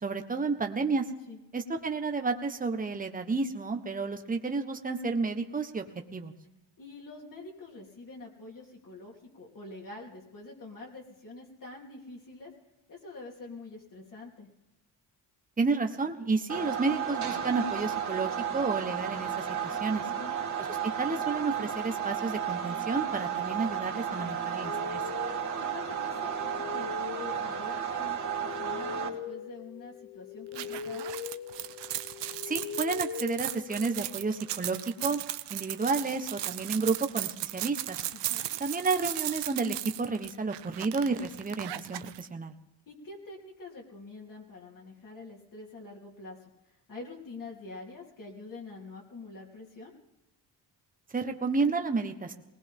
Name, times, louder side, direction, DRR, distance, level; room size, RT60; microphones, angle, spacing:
voice 1, 0.0-1.1 1.5-5.8 6.1-6.3 15.6-20.0 20.6-25.0 32.4-35.2 35.5-38.0 38.6-42.5 51.1-52.3, right 4 dB, 20° right, 5 dB, 1.3 m, -31 dB
voice 2, 6.8-12.5 12.9-14.5 20.0-20.4 25.6-31.1 38.1-38.5 42.9-46.5 46.9-49.9, left 3 dB, 50° left, -3 dB, 3.5 m, -46 dB
sound 1, 16.5-29.1, right 8 dB, 45° right, 2.7 m, -33 dB
sound 2, 24.6-34.3, left 7 dB, 70° left, 1.0 m, -41 dB
sound 3, 30.5-42.2, right 14 dB, 85° right, 0.8 m, -36 dB
20.0 x 19.0 x 3.8 m, 0.96 s
cardioid pair, 100°, 41 cm